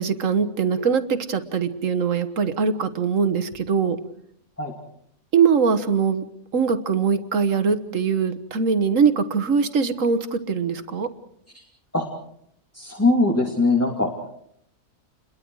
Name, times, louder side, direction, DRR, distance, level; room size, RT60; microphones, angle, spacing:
voice 1, 0.0-4.0 5.3-6.2 6.5-11.1, right 6 dB, 55° right, 10 dB, 1.7 m, -22 dB
voice 2, 12.7-14.1, left 2 dB, 10° left, -1 dB, 2.7 m, -21 dB
29.5 x 22.5 x 4.8 m, 0.70 s
omnidirectional pair, 1.6 m